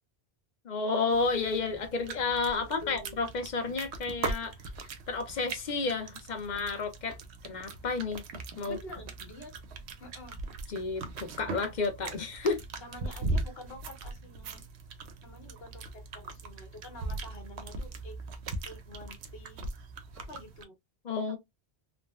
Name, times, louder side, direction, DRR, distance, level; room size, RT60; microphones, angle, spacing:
voice 1, 0.6-4.5 5.1-7.2 7.4-8.2 8.6-8.8 10.7-12.6 21.0-21.4, left 4 dB, 50° left, 0.7 m, -31 dB
sound 1, 1.1-20.6, right 3 dB, 90° right, 0.9 m, -40 dB
voice 2, 2.5-3.2 8.6-9.5 10.0-10.4 12.8-14.6 15.2-18.2 18.6-19.6 20.3-20.8, left 2 dB, 70° left, 1.2 m, -48 dB
3.5 x 2.0 x 2.3 m
omnidirectional pair, 1.1 m